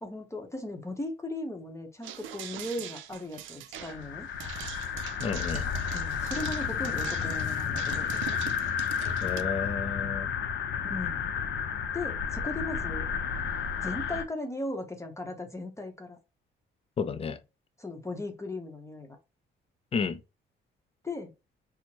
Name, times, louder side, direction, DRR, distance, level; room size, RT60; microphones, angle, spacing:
voice 1, 0.0-4.3 5.9-8.1 10.8-11.2 11.9-13.0 13.8-16.2 17.8-19.2 21.0-21.3, left 2 dB, 15° left, 0.8 m, -37 dB
sound 1, 2.0-9.4, right 12 dB, 80° right, 0.4 m, -42 dB
sound 2, 3.8-14.2, left 7 dB, 65° left, 0.6 m, -32 dB
voice 2, 5.2-5.7 9.2-10.3 17.0-17.4 19.9-20.2, left 5 dB, 30° left, 0.4 m, -31 dB
4.4 x 2.1 x 2.9 m
cardioid pair, 90°, 20 cm